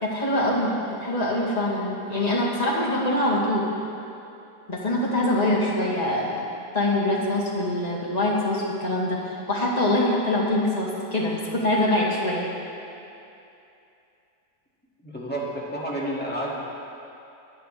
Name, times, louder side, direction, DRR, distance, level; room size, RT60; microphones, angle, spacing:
voice 1, 0.0-3.7 4.7-6.4 6.7-12.5, left 1 dB, 25° left, -5 dB, 2.1 m, -24 dB
voice 2, 15.0-16.5, right 1 dB, 5° left, -6 dB, 2.1 m, -30 dB
25.5 x 9.3 x 3.4 m, 2.8 s
omnidirectional pair, 1.8 m